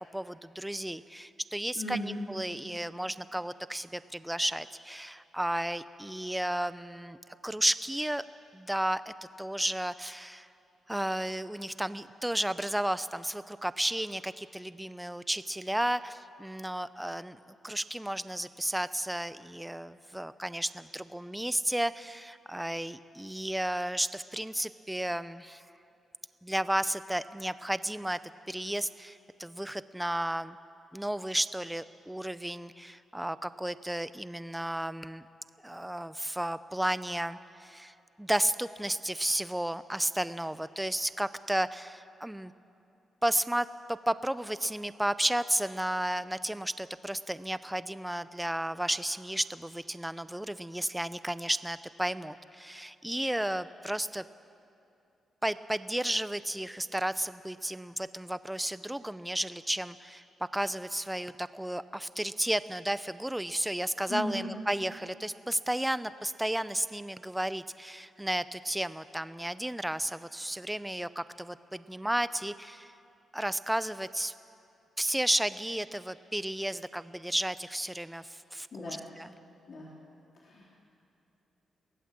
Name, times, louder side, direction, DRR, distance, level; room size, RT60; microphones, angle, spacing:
voice 1, 0.1-7.2 7.4-8.2 8.5-10.5 10.9-17.4 17.6-25.6 26.4-28.2 28.5-30.6 30.9-35.3 35.6-42.5 43.2-54.2 55.4-72.9 73.3-74.3 75.0-79.3, right 1 dB, 5° right, 14 dB, 0.5 m, -33 dB
voice 2, 1.8-2.2 64.1-64.5 78.7-79.0 79.7-79.9 80.4-80.7, left 1 dB, 50° left, -5 dB, 2.8 m, -36 dB
22.5 x 17.5 x 7.5 m, 2.7 s
wide cardioid pair, 155°, 0 cm